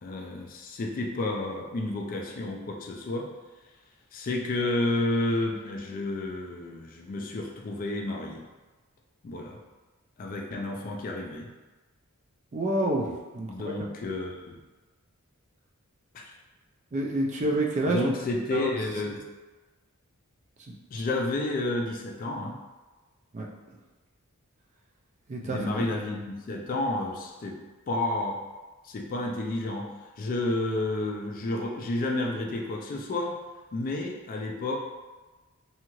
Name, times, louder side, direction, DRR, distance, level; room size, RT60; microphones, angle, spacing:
voice 1, 0.0-3.3 4.1-8.5 9.2-9.6 10.2-11.5 13.5-14.6 16.1-16.3 17.9-19.2 20.9-22.6 25.4-27.6 27.9-28.4 28.8-29.9 30.2-33.4 33.7-34.8, left 2 dB, 40° left, 1 dB, 0.3 m, -31 dB
voice 2, 12.5-13.7 16.9-18.1 18.5-18.7 20.7-20.8 23.3-23.5 25.3-25.9, right 1 dB, 35° right, -1 dB, 0.4 m, -28 dB
2.7 x 2.4 x 2.9 m, 1.2 s
head